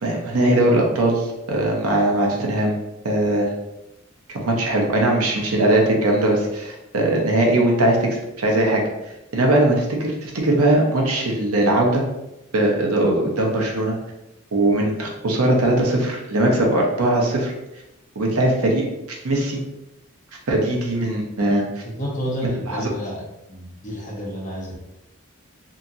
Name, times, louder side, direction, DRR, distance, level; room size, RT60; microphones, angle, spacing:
voice 1, 0.0-2.7 3.0-3.5 4.3-8.8 9.3-12.0 12.5-14.0 14.5-17.5 18.2-19.6 20.5-21.6 22.7-22.9, right 1 dB, 85° right, 0 dB, 0.7 m, -20 dB
voice 2, 21.8-24.8, equal, 35° left, -4 dB, 0.8 m, -30 dB
2.8 x 2.6 x 2.5 m, 0.92 s
head